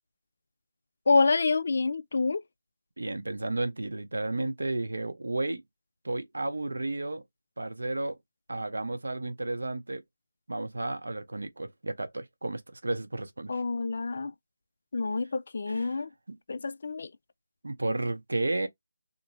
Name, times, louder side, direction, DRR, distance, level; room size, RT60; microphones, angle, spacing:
voice 1, 1.1-2.4 13.5-14.3 14.9-16.1 16.5-17.1, left 4 dB, 35° left, 0.3 m, -27 dB
voice 2, 3.0-5.6 6.0-7.2 7.6-8.2 8.5-10.0 10.5-13.6 15.7-15.9 16.3-16.4 17.6-18.7, right 2 dB, 80° right, 0.8 m, -32 dB
3.4 x 2.7 x 3.0 m
figure-of-eight pair, 180°, 0 cm